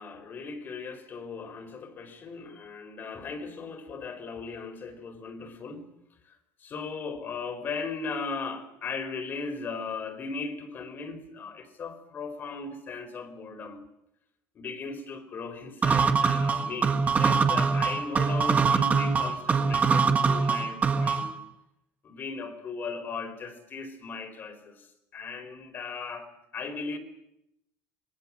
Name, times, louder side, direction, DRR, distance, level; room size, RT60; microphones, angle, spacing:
voice 1, 0.0-5.9 6.2-13.8 14.5-21.3 22.0-27.0, left 4 dB, 35° left, 4.6 m, -37 dB
sound 1, 15.8-21.4, right 5 dB, 25° right, 1.9 m, -23 dB
26.0 x 22.5 x 7.6 m
cardioid pair, 145°, 6 cm